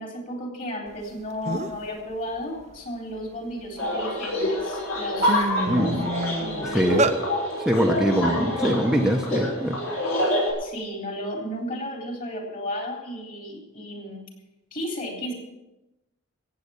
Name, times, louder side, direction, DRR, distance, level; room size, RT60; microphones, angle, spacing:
voice 1, 0.0-7.1 10.6-14.3 14.7-15.3, equal, 40° left, 1 dB, 3.8 m, -34 dB
sound 1, 1.1-1.2 1.5-1.9 2.3-3.9 4.5-4.6 4.9-7.2, right 2 dB, 35° right, 0.8 m, -28 dB
sound 2, 3.8-10.5, left 1 dB, 85° left, 5.8 m, -26 dB
voice 2, 5.7-6.0 6.7-7.0 7.6-9.8, equal, 5° right, 0 dB, 1.0 m, -23 dB
15.0 x 9.0 x 7.1 m, 0.98 s
head